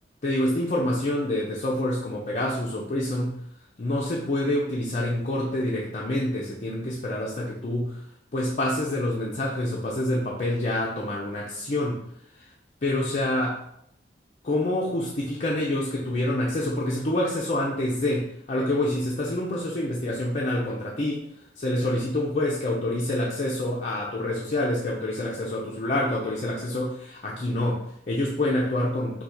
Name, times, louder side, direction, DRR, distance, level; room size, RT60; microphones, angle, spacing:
voice 1, 0.2-3.4 3.8-8.0 8.3-12.0 12.4-12.5 12.8-13.6 14.4-21.3 21.6-29.2, left 1 dB, 40° left, -3 dB, 0.5 m, -27 dB
3.8 x 2.3 x 4.3 m, 0.74 s
head